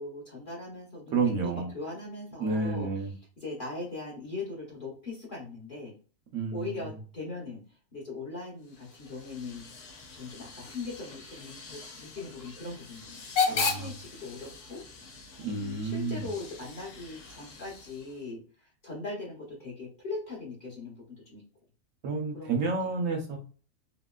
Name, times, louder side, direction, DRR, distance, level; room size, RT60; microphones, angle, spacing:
voice 1, 0.0-2.9 3.4-5.9 6.5-9.6 10.1-14.8 15.5-21.4 22.3-22.5, left 3 dB, 40° left, -4 dB, 0.9 m, -40 dB
voice 2, 1.1-1.7 2.4-3.1 6.3-6.9 13.5-13.9 15.4-16.2 22.0-23.4, right 4 dB, 65° right, 2 dB, 0.8 m, -30 dB
Hiss / Train / Alarm, 8.6-18.3, left 5 dB, 90° left, 1.2 m, -37 dB
2.9 x 2.8 x 2.2 m, 0.39 s
omnidirectional pair, 1.6 m